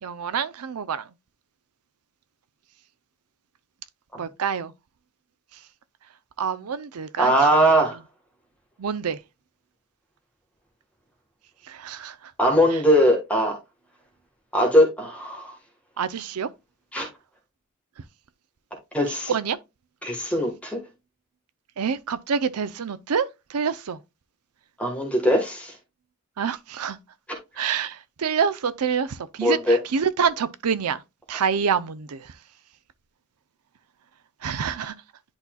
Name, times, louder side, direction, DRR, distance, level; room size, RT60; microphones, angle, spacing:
voice 1, 0.0-1.1 4.2-4.7 6.4-7.3 8.8-9.2 11.7-12.3 16.0-16.5 19.3-19.6 21.8-24.0 26.4-27.0 27.6-31.0 31.3-32.3 34.4-34.9, right 6 dB, 90° right, 0.5 m, -27 dB
voice 2, 7.2-8.0 12.4-13.6 14.5-15.6 16.9-17.1 18.9-19.3 20.0-20.8 24.8-25.7 29.4-29.8, equal, 5° left, 1.3 m, -20 dB
10.5 x 4.1 x 2.3 m
head